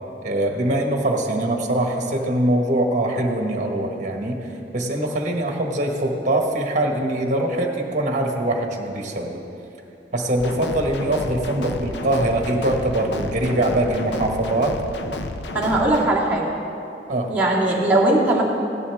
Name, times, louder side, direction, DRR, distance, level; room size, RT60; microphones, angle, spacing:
voice 1, 0.2-9.4 10.1-14.8 17.1-17.3, right 1 dB, 45° right, 2 dB, 1.4 m, -23 dB
sound 1, 10.4-16.1, left 2 dB, 75° left, 0.7 m, -31 dB
voice 2, 15.5-16.6 17.3-18.4, right 2 dB, 10° right, -7 dB, 2.1 m, -19 dB
16.0 x 11.0 x 3.5 m, 2.8 s
head